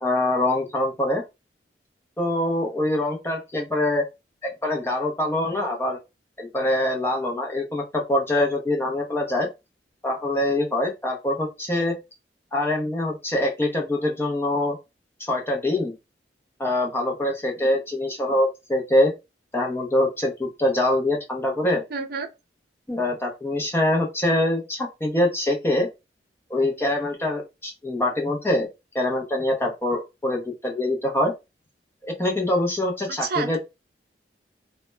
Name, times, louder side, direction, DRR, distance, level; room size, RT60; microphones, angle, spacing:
voice 1, 0.0-1.2 2.2-4.0 4.4-6.0 6.4-9.5 10.0-12.0 12.5-14.8 15.2-15.9 16.6-19.1 19.5-21.8 22.9-25.9 26.5-28.7 28.9-31.3 32.0-33.6, left 1 dB, 15° left, 0.5 m, -24 dB
voice 2, 21.9-22.3 33.2-33.6, right 5 dB, 60° right, 0.5 m, -28 dB
2.1 x 2.0 x 3.1 m
head